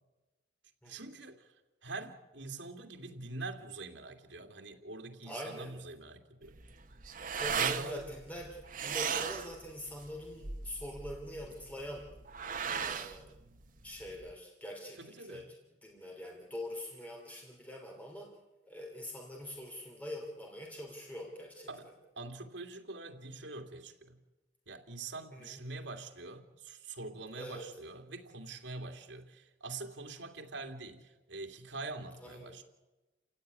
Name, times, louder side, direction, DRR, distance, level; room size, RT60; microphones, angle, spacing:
voice 1, 0.8-6.6 7.4-8.0 15.0-15.5 21.7-21.9 22.2-24.2 24.7-32.6, right 3 dB, 80° right, 4 dB, 2.7 m, -44 dB
voice 2, 5.2-5.7 7.3-12.1 12.6-13.3 13.8-15.4 15.8-18.3 18.7-21.7 25.3-25.5 27.3-27.7 32.2-32.5, equal, 10° left, 1 dB, 3.2 m, -44 dB
sound 1, 6.4-14.3, right 6 dB, 45° right, 1.1 m, -37 dB
29.5 x 16.0 x 9.7 m, 1.1 s
head